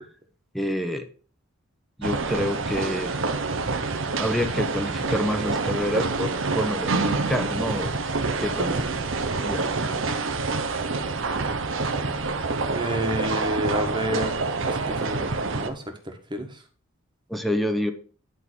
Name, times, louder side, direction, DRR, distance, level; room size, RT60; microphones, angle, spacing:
voice 1, 0.5-1.0 2.0-3.1 4.2-9.0 9.3-10.1 17.3-17.9, equal, ahead, 6 dB, 0.9 m, -28 dB
sound 1, 2.0-15.7, right 3 dB, 65° right, 1.0 m, -27 dB
voice 2, 12.7-15.8 16.3-16.6, equal, 20° right, 4 dB, 1.5 m, -29 dB
11.0 x 3.9 x 6.2 m, 0.41 s
head